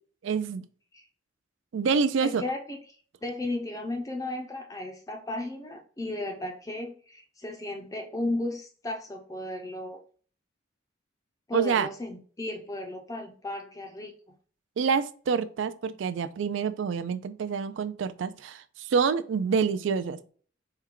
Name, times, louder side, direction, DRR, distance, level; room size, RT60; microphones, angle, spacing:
voice 1, 0.2-0.7 1.7-2.4 11.5-11.9 14.8-20.3, right 5 dB, 70° right, 13 dB, 0.3 m, -27 dB
voice 2, 2.2-2.8 3.2-10.0 11.5-14.1, left 2 dB, 15° left, 3 dB, 0.4 m, -35 dB
4.5 x 2.2 x 3.6 m, 0.43 s
head